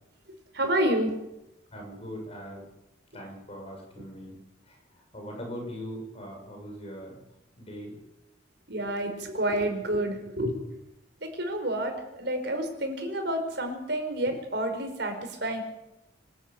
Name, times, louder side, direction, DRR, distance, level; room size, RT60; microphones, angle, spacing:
voice 1, 0.5-1.1 8.7-10.7 11.2-15.6, right 1 dB, 65° right, 5 dB, 4.9 m, -29 dB
voice 2, 1.7-2.6 3.1-4.4 4.7-4.8 5.1-7.1 7.6-8.0, equal, 30° left, 1 dB, 7.4 m, -40 dB
26.5 x 13.0 x 9.3 m, 0.92 s
head